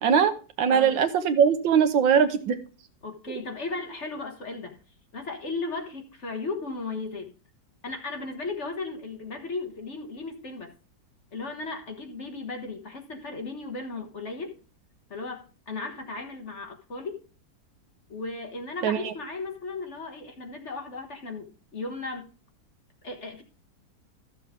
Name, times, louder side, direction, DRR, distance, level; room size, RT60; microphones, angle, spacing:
voice 1, 0.0-2.6 18.8-19.1, right 7 dB, 85° right, 9 dB, 1.7 m, -21 dB
voice 2, 3.0-4.8 5.1-7.3 7.8-10.7 11.3-14.6 15.1-17.2 18.1-22.3 23.0-23.4, left 3 dB, 40° left, 3 dB, 1.4 m, -36 dB
13.5 x 7.0 x 3.6 m, 0.37 s
omnidirectional pair, 2.0 m